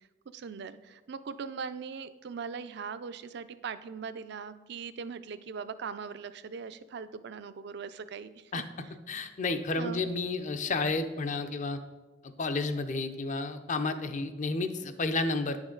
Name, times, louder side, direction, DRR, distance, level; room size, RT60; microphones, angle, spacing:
voice 1, 0.3-8.6 9.8-10.0, right 5 dB, 65° right, 13 dB, 0.4 m, -40 dB
voice 2, 9.1-11.8 12.4-15.6, left 3 dB, 40° left, 9 dB, 0.6 m, -31 dB
9.4 x 6.2 x 3.8 m, 1.1 s
head